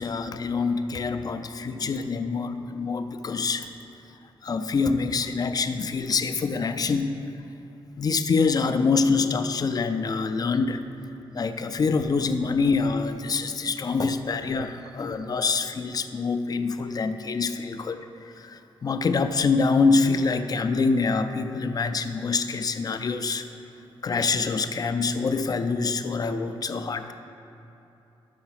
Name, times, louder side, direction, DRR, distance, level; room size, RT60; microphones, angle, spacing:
voice 1, 0.0-3.7 4.4-7.2 8.0-10.8 11.3-18.0 18.4-23.4 24.0-27.1, left 4 dB, 40° left, 9 dB, 0.4 m, -25 dB
5.9 x 5.7 x 5.7 m, 2.9 s
wide cardioid pair, 100°, 10 cm